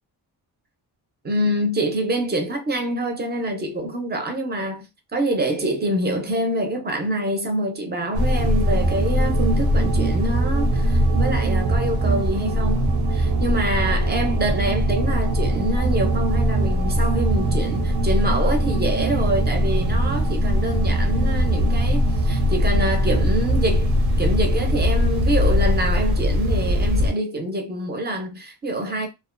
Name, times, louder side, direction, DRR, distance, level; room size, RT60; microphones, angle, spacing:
voice 1, 1.2-29.1, right 1 dB, 25° right, 0.5 m, -26 dB
sound 1, 8.1-27.1, equal, 65° right, 0.6 m, -21 dB
2.3 x 2.2 x 2.4 m
wide cardioid pair, 160°, 41 cm